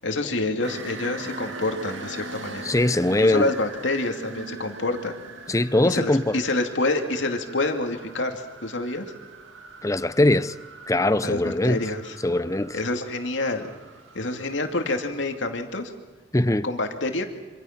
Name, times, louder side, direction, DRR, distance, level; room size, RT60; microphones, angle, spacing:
voice 1, 0.0-2.6 3.2-5.2 5.8-9.1 11.2-12.2 12.7-13.7 14.1-15.9 16.6-17.2, left 2 dB, 75° left, 2.6 m, -27 dB
sound 1, 0.6-15.4, right 3 dB, 85° right, 2.4 m, -42 dB
voice 2, 2.6-3.5 5.5-6.4 9.8-10.5 10.9-11.8 12.2-12.8 16.3-16.7, left 1 dB, 15° left, 0.7 m, -21 dB
26.5 x 26.0 x 6.0 m
head